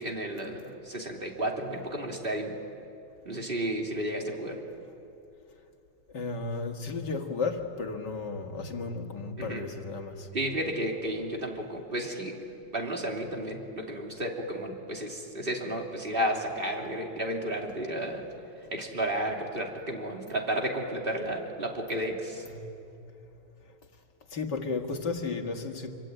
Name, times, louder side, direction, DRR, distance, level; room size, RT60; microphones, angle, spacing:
voice 1, 0.0-2.5 3.2-4.6 9.4-9.7 10.3-12.4 12.7-18.2 18.7-22.4, right 1 dB, 25° right, 0 dB, 3.1 m, -32 dB
voice 2, 6.1-10.3 22.5-22.6 24.3-25.9, left 4 dB, 50° left, 3 dB, 2.4 m, -33 dB
27.0 x 24.0 x 9.1 m, 2.7 s
omnidirectional pair, 2.4 m